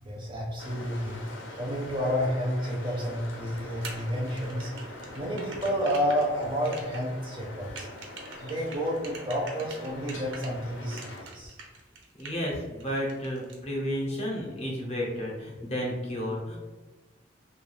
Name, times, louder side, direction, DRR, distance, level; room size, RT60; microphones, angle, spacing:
voice 1, 0.0-1.2 1.6-4.7 5.1-7.9 8.4-11.5, equal, 25° right, -3 dB, 0.4 m, -30 dB
sound 1, 0.6-11.2, left 1 dB, 80° left, 0.5 m, -43 dB
sound 2, 3.8-10.5 10.9-12.5 12.8-13.6, right 4 dB, 80° right, 0.5 m, -44 dB
voice 2, 12.2-16.6, equal, 35° left, -2 dB, 0.6 m, -32 dB
2.3 x 2.2 x 3.1 m, 1.2 s
head